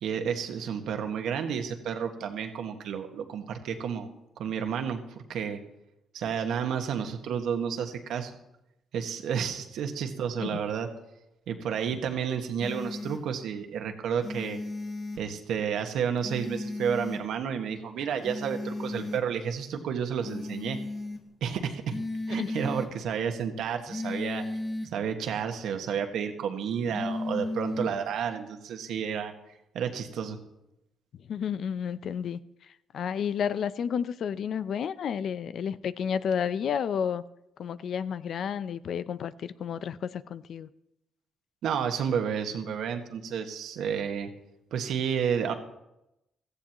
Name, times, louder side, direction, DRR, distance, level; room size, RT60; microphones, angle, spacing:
voice 1, 0.0-4.1 4.4-5.6 6.1-8.4 8.9-10.9 11.5-14.6 15.2-20.8 21.4-22.0 22.3-24.4 24.9-29.3 29.7-30.4 41.6-44.3 44.7-45.5, right 7 dB, 75° right, 1.5 m, -31 dB
sound 1, 12.6-13.2 14.2-15.2 16.2-17.2 18.2-19.2 20.2-21.2 21.9-22.9 23.9-24.9 26.9-28.0, left 2 dB, 35° left, 1.5 m, -34 dB
voice 2, 31.1-32.4 32.9-37.2 37.6-40.7, left 7 dB, 65° left, 0.5 m, -31 dB
16.5 x 14.5 x 3.0 m
cardioid pair, 90°, 0 cm